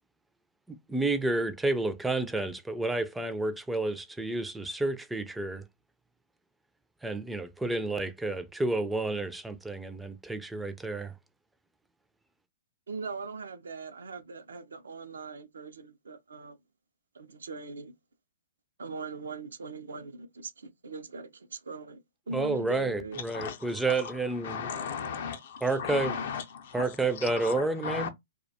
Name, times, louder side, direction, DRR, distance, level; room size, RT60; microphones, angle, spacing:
voice 1, 0.7-5.6 7.0-11.1 22.3-24.7 25.6-26.2 26.7-28.1, right 2 dB, 5° right, 0.4 m, -30 dB
voice 2, 12.9-16.6 17.1-17.9 18.8-23.2, right 4 dB, 80° right, 0.5 m, -40 dB
voice 3, 23.3-28.1, left 6 dB, 60° left, 0.5 m, -37 dB
2.3 x 2.1 x 2.6 m
hypercardioid pair, 120°, 0 cm